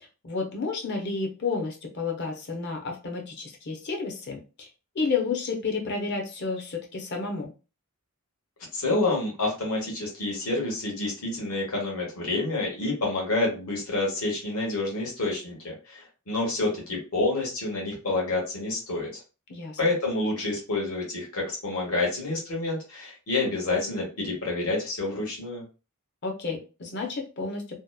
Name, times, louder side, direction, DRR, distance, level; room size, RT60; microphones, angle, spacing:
voice 1, 0.2-4.7 4.9-7.5 19.5-19.8 26.2-27.8, left 4 dB, 50° left, 2 dB, 0.6 m, -31 dB
voice 2, 8.7-19.1 19.8-25.6, left 2 dB, 80° left, -3 dB, 1.1 m, -28 dB
2.8 x 2.0 x 2.3 m, 0.32 s
head